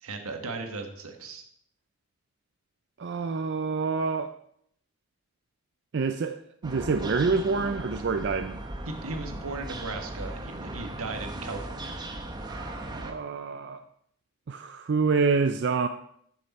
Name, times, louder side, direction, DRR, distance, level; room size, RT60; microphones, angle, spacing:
voice 1, 0.0-1.4 8.9-12.0, right 3 dB, 80° right, 5 dB, 1.4 m, -37 dB
voice 2, 3.0-4.3 5.9-8.6 12.4-13.8 14.5-15.9, right 4 dB, 50° right, 8 dB, 0.4 m, -27 dB
sound 1, 6.6-13.1, right 1 dB, 20° right, 0.8 m, -38 dB
12.0 x 6.5 x 4.2 m, 0.68 s
head